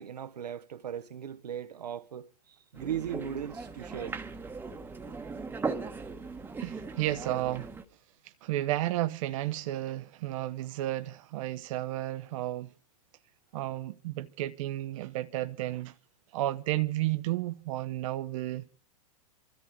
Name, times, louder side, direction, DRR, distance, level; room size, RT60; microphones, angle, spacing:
voice 1, 0.0-4.2, right 9 dB, 80° right, 0.9 m, -38 dB
sound 1, 2.8-7.8, right 4 dB, 10° right, 1.1 m, -38 dB
voice 2, 6.6-7.7 8.2-12.7 13.5-16.0 16.3-18.8, right 15 dB, 55° right, 0.7 m, -32 dB
26.5 x 13.5 x 3.6 m
hypercardioid pair, 115°, 20 cm